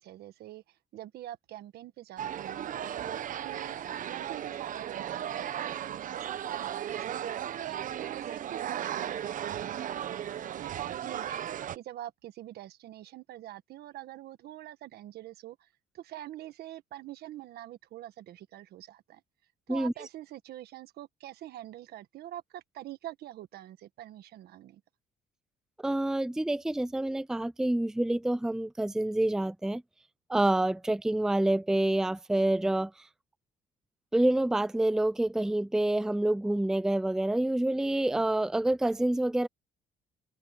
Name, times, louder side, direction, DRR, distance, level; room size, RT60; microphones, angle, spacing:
voice 1, 0.0-3.8 4.0-15.7 15.9-19.2 19.7-24.8, right 13 dB, 70° right, 1.4 m, -45 dB
sound 1, 2.2-11.8, right 10 dB, 50° right, 1.0 m, -36 dB
voice 2, 25.8-29.8 30.3-32.9 34.1-39.5, right 1 dB, 5° right, 0.5 m, -27 dB
cardioid pair, 110°, 17 cm